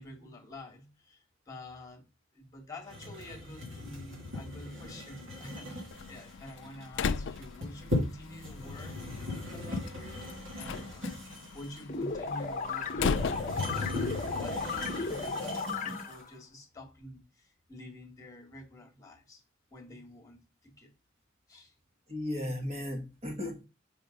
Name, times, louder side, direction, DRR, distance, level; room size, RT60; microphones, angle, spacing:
voice 1, 0.0-2.1 2.3-11.2 11.5-19.4 19.7-20.9 21.5-21.7, left 1 dB, 20° left, 1.7 m, -48 dB
sound 1, 2.9-16.2, left 2 dB, 70° right, 2.6 m, -38 dB
Slam, 5.9-15.3, left 5 dB, 65° left, 0.4 m, -38 dB
sound 2, 11.9-16.3, left 4 dB, 40° left, 0.8 m, -35 dB
voice 2, 22.1-23.7, left 1 dB, 35° right, 1.7 m, -35 dB
5.5 x 3.6 x 5.1 m
head